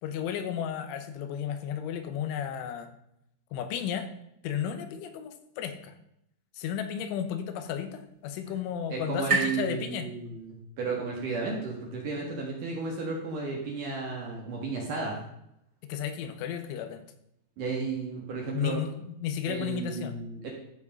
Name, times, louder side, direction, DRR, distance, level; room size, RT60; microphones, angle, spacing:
voice 1, 0.0-2.9 3.5-4.1 4.4-5.9 6.6-10.1 15.9-17.0 18.5-20.1, left 9 dB, 85° left, 8 dB, 3.4 m, -33 dB
sound 1, 7.0-10.7, right 4 dB, 25° right, 2.2 m, -35 dB
voice 2, 8.9-15.2 17.6-18.8 19.5-20.5, right 4 dB, 55° right, -1 dB, 2.5 m, -33 dB
14.5 x 5.0 x 5.4 m, 0.78 s
omnidirectional pair, 5.5 m